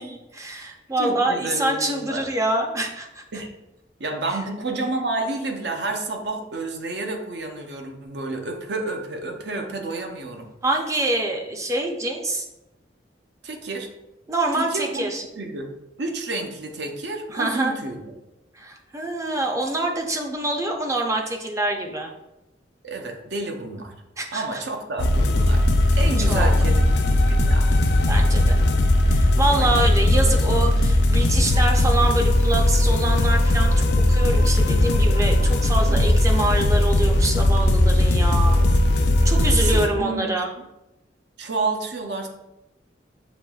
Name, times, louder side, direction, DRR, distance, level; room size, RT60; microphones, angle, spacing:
voice 1, 0.0-3.2 10.6-12.5 14.3-15.2 17.3-17.8 18.5-22.1 24.2-24.6 26.3-26.5 28.1-28.6 29.1-38.6 39.2-40.5, right 2 dB, 15° right, 1 dB, 0.5 m, -25 dB
voice 2, 1.0-2.3 3.3-3.5 4.0-10.5 13.4-13.9 14.6-15.1 15.4-15.7 16.0-18.1 22.8-23.9 24.3-25.7 26.0-27.7 29.6-30.0 35.9-36.5 38.5-38.8 39.4-40.4 41.4-42.3, right 2 dB, 65° right, 3 dB, 0.6 m, -30 dB
sound 1, 25.0-39.9, left 1 dB, 65° left, 0.4 m, -18 dB
6.9 x 2.9 x 2.3 m, 0.95 s
head